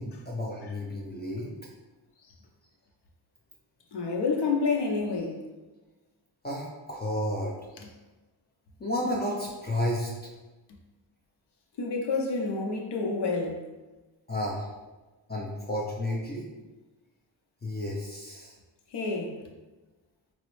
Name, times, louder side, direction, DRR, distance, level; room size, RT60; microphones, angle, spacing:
voice 1, 0.0-1.5 6.4-7.5 8.8-10.3 14.3-14.7 15.3-16.5 17.6-18.5, left 1 dB, 20° left, 0.5 m, -32 dB
voice 2, 3.9-5.4 11.8-13.6 18.9-19.4, left 4 dB, 60° left, 0.7 m, -28 dB
3.8 x 2.0 x 3.0 m
cardioid pair, 95°, 46 cm